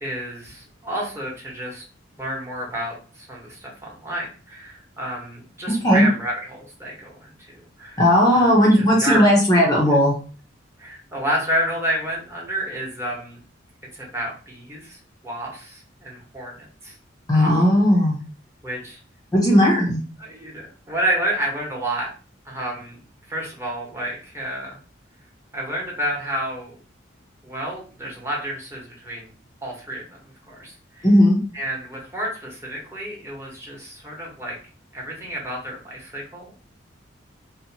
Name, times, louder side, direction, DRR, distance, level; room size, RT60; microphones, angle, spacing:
voice 1, 0.0-1.8 2.2-8.0 8.3-9.2 10.8-13.4 13.9-16.9 17.3-17.5 18.6-19.0 20.2-22.1 22.4-23.0 23.3-24.8 25.5-26.8 27.4-29.3 29.6-30.2 30.5-31.1 31.5-34.6 34.9-36.6, right 1 dB, 15° right, -3 dB, 1.0 m, -30 dB
voice 2, 5.7-6.1 8.0-10.1 17.3-18.2 19.3-20.0 31.0-31.4, equal, 20° left, -3 dB, 0.6 m, -16 dB
2.6 x 2.2 x 2.7 m, 0.38 s
head